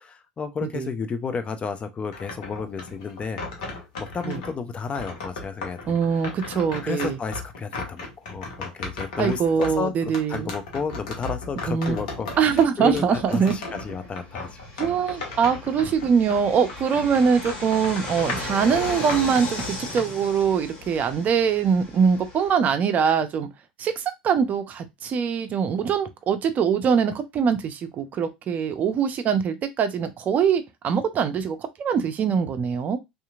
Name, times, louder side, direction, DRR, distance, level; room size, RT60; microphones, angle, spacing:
voice 1, 0.0-3.4 3.7-5.9 6.8-9.9 10.3-14.6, left 5 dB, 30° left, 0.5 m, -32 dB
sound 1, 2.1-4.6 4.9-16.4 16.7-20.0, left 3 dB, 75° left, 0.9 m, -36 dB
voice 2, 5.9-7.2 9.2-10.5 11.7-12.0 12.4-13.5 14.8-23.5 23.8-33.0, right 7 dB, 40° right, 0.6 m, -23 dB
Fixed-wing aircraft airplane, 13.3-22.5, left 2 dB, 45° left, 1.6 m, -37 dB
2.8 x 2.5 x 2.4 m
hypercardioid pair, 75°, 4 cm